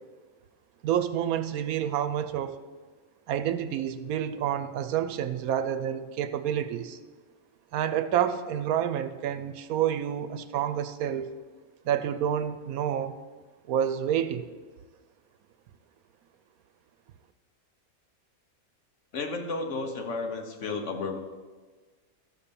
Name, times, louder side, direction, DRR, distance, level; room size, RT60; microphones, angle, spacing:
voice 1, 0.8-2.6 3.3-7.0 7.7-11.3 11.9-13.1 13.7-14.5, right 10 dB, 80° right, 11 dB, 1.1 m, -28 dB
voice 2, 19.1-21.2, left 3 dB, 60° left, 4 dB, 1.2 m, -32 dB
12.5 x 4.3 x 6.8 m, 1.4 s
omnidirectional pair, 1.5 m